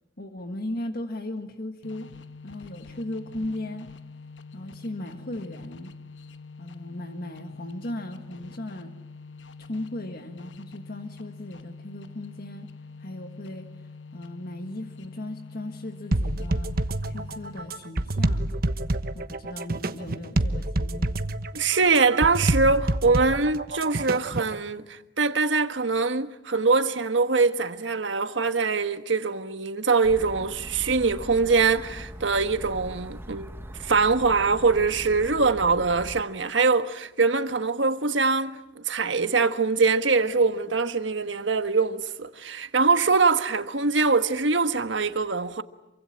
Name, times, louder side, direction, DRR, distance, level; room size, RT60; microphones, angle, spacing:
voice 1, 0.2-2.1 2.4-3.9 4.5-5.9 6.6-8.9 9.6-12.7 13.0-13.7 14.1-16.8 17.1-18.5 19.1-21.2, left 1 dB, 55° left, 1.7 m, -37 dB
sound 1, 1.8-18.0, left 4 dB, 80° left, 1.1 m, -45 dB
sound 2, 16.1-24.6, right 1 dB, 55° right, 1.2 m, -27 dB
voice 2, 21.5-33.5 33.8-45.6, right 4 dB, 85° right, 1.5 m, -23 dB
sound 3, 30.0-36.2, equal, 15° right, 1.2 m, -41 dB
27.5 x 24.5 x 8.7 m
head